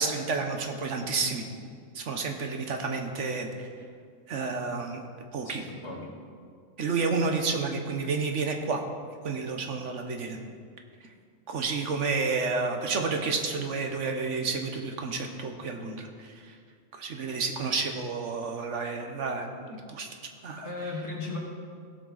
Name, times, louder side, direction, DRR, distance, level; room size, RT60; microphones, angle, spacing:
voice 1, 0.0-1.4 1.9-3.5 4.3-5.0 5.3-5.6 6.8-8.8 9.2-10.4 11.5-16.5 16.9-20.1 20.4-20.6, right 4 dB, 70° right, 4 dB, 1.3 m, -30 dB
voice 2, 5.4-6.1 20.6-21.4, left 3 dB, 60° left, -2 dB, 2.1 m, -36 dB
16.5 x 7.6 x 4.0 m, 2.1 s
omnidirectional pair, 1.3 m